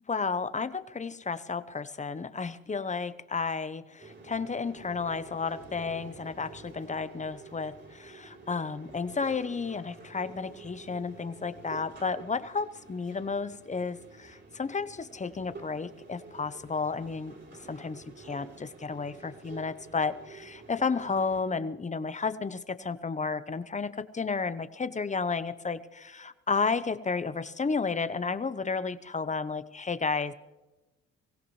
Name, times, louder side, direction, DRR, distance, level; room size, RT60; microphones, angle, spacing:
voice 1, 0.1-17.4 17.7-30.3, left 4 dB, 25° left, 14 dB, 0.9 m, -32 dB
sound 1, 4.0-21.4, right 3 dB, 35° right, 3.4 m, -49 dB
24.0 x 16.0 x 3.2 m, 1.1 s
cardioid pair, 75°, 30 cm